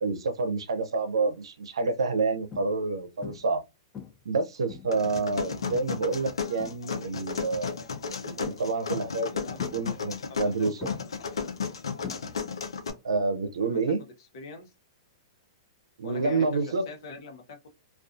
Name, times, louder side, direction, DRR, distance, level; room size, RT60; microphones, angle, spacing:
voice 1, 0.0-3.6 4.2-7.9 8.2-9.3 9.7-10.9 13.0-14.0 16.0-16.9, right 3 dB, 80° right, 0.5 m, -28 dB
sound 1, 0.9-1.2 1.8-1.9 2.5-2.9 3.2-3.6 3.9-5.1 5.7-6.0 6.4-7.2 8.4-8.9 9.6-10.5 10.8-12.7 12.9-13.4 15.4-15.5, left 7 dB, 20° left, 0.5 m, -44 dB
sound 2, 4.9-12.9, left 6 dB, 85° left, 0.5 m, -34 dB
voice 2, 8.5-9.8 10.3-10.7 13.6-14.1 14.3-14.7 16.0-17.7, left 3 dB, 60° left, 0.8 m, -44 dB
2.4 x 2.3 x 2.4 m
hypercardioid pair, 120°, 3 cm